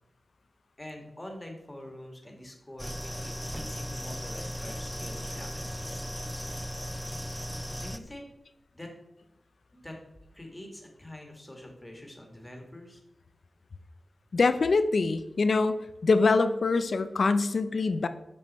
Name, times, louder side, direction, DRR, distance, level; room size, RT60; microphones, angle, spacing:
voice 1, 0.8-6.4 7.7-8.3 8.7-8.9 9.7-10.0 10.3-13.0, left 1 dB, 15° left, 2 dB, 2.0 m, -45 dB
sound 1, 2.8-8.0, equal, ahead, 0.5 m, -36 dB
voice 2, 14.3-15.8 16.0-18.1, left 3 dB, 70° left, 11 dB, 0.5 m, -24 dB
7.7 x 5.4 x 4.2 m, 0.90 s
wide cardioid pair, 65°, 0 cm